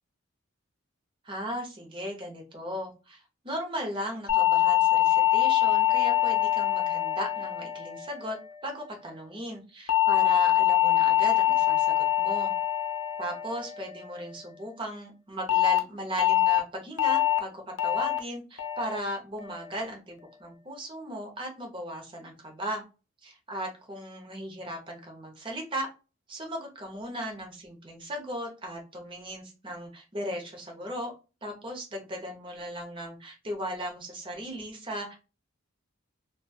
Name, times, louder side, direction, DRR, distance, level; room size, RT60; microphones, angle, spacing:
voice 1, 1.2-3.2 3.4-8.4 8.6-12.5 13.2-22.8 23.2-25.9 26.3-31.1 31.4-35.2, right 1 dB, 25° right, 2 dB, 0.7 m, -37 dB
sound 1, 4.3-8.7 9.9-14.3 15.5-15.8 16.2-16.6 17.0-17.4 17.8-18.2 18.6-19.0 19.4-19.8, left 12 dB, 90° left, 0.5 m, -24 dB
2.9 x 2.3 x 2.2 m, 0.31 s
head